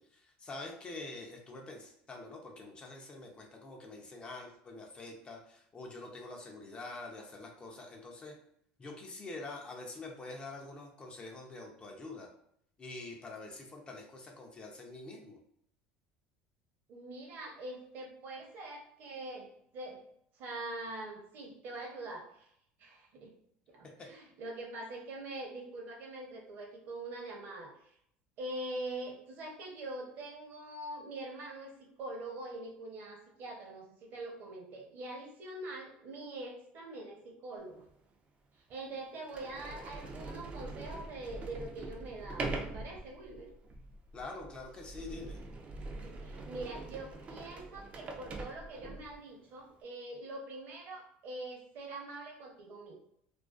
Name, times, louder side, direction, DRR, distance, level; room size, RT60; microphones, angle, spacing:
voice 1, 0.1-8.3 8.8-12.3 12.8-15.4 24.0-24.1 44.1-45.4, left 2 dB, 25° left, 1 dB, 0.5 m, -46 dB
voice 2, 16.9-19.5 19.7-20.0 20.3-22.5 22.8-23.3 23.7-27.9 28.4-37.8 38.7-43.5 45.9-53.0, right 2 dB, 55° right, 0 dB, 0.8 m, -44 dB
Sliding door, 37.9-38.0 38.7-38.8 39.2-49.2, right 2 dB, 30° right, 0.4 m, -43 dB
2.4 x 2.2 x 2.3 m, 0.71 s
supercardioid pair, 120°, 4 cm